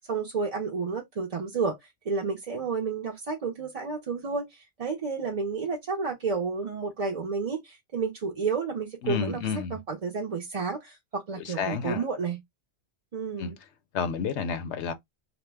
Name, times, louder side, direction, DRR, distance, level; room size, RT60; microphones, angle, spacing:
voice 1, 0.0-1.8 2.1-9.4 9.7-12.4 13.1-13.6, right 5 dB, 45° right, 0.5 m, -31 dB
voice 2, 9.0-9.8 11.3-12.0 13.4-13.5 13.9-14.9, left 6 dB, 85° left, 0.9 m, -30 dB
2.9 x 2.0 x 3.3 m
omnidirectional pair, 1.1 m